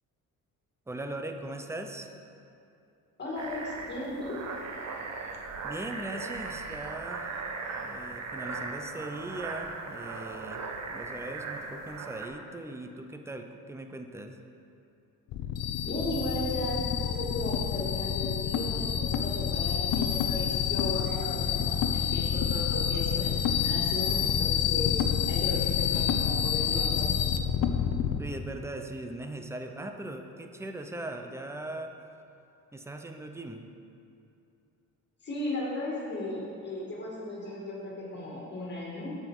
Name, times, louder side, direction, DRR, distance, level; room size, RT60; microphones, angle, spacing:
voice 1, 0.9-2.1 5.6-10.6 10.9-14.4 28.2-31.9 32.7-33.6, right 1 dB, 10° right, 5 dB, 0.4 m, -39 dB
voice 2, 3.2-4.5 15.8-25.0 25.3-27.3 35.2-39.2, left 1 dB, 30° left, -5 dB, 2.0 m, -36 dB
sound 1, 3.4-12.3, right 4 dB, 50° right, 0.9 m, -38 dB
sound 2, 15.3-28.2, left 8 dB, 70° left, 0.7 m, -28 dB
9.0 x 7.9 x 4.6 m, 2.7 s
cardioid pair, 160°, 34 cm